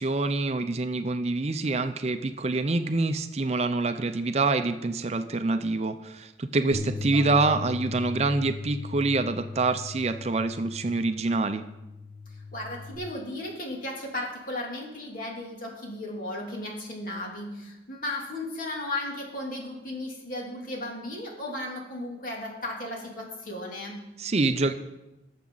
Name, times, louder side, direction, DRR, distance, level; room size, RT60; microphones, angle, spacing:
voice 1, 0.0-11.6 24.2-24.7, right 3 dB, 40° right, 9 dB, 0.5 m, -26 dB
voice 2, 6.7-7.3 12.5-24.0, left 1 dB, 50° left, -2 dB, 2.8 m, -35 dB
Bass guitar, 6.7-13.0, left 3 dB, 20° left, 1.9 m, -38 dB
18.0 x 7.3 x 3.9 m, 0.97 s
head